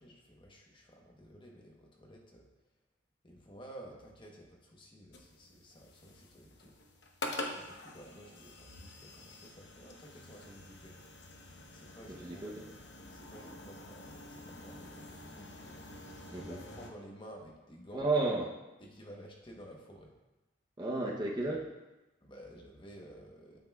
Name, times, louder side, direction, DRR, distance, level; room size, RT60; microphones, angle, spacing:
voice 1, 0.0-2.5 3.2-6.7 7.5-11.0 11.7-12.5 13.1-15.5 16.3-18.0 18.8-20.1 21.4-21.5 22.2-23.6, equal, 25° left, 0 dB, 1.0 m, -53 dB
sound 1, 5.1-16.9, left 2 dB, 65° left, 0.8 m, -47 dB
voice 2, 12.1-12.6 16.3-16.6 17.9-18.5 20.8-21.6, right 2 dB, 20° right, -2 dB, 0.8 m, -33 dB
9.0 x 7.9 x 2.3 m, 1.0 s
head